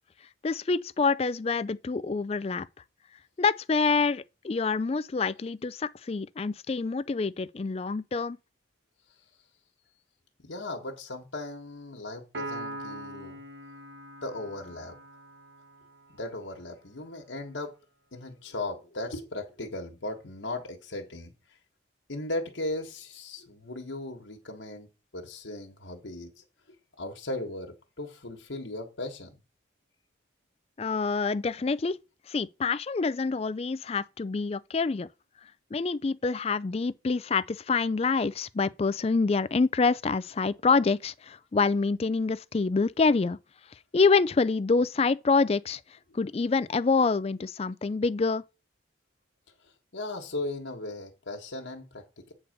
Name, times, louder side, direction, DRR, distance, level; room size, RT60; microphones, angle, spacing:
voice 1, 0.4-2.7 3.4-8.4 30.8-32.0 32.3-35.1 35.7-43.4 43.9-48.4, left 4 dB, 30° left, 0.3 m, -26 dB
voice 2, 10.4-13.4 14.2-15.0 16.1-17.7 18.1-21.3 22.1-26.4 27.0-29.4 49.9-52.3, left 2 dB, 80° left, 1.4 m, -37 dB
Piano, 12.3-15.9, right 1 dB, 65° right, 1.3 m, -41 dB
8.5 x 4.1 x 6.6 m
head